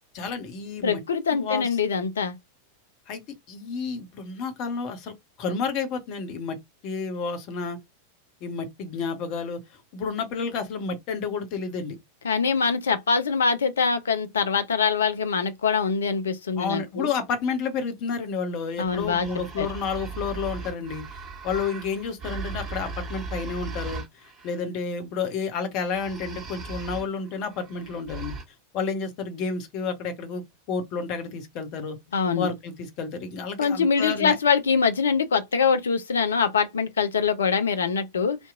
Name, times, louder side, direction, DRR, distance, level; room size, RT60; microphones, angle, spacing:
voice 1, 0.1-1.0 1.3-1.7 3.1-3.2 3.5-5.1 5.4-6.6 6.8-7.8 8.4-12.0 16.6-28.4 28.7-32.0 32.4-34.4, left 5 dB, 40° left, 0.7 m, -30 dB
voice 2, 0.8-2.3 12.2-17.1 18.8-19.3 19.6-19.7 32.1-32.5 33.6-38.4, left 5 dB, 70° left, 0.5 m, -23 dB
sound 1, 18.8-24.6 25.8-28.4, right 4 dB, 25° right, 1.5 m, -38 dB
2.7 x 2.1 x 2.4 m
figure-of-eight pair, 90°, 0 cm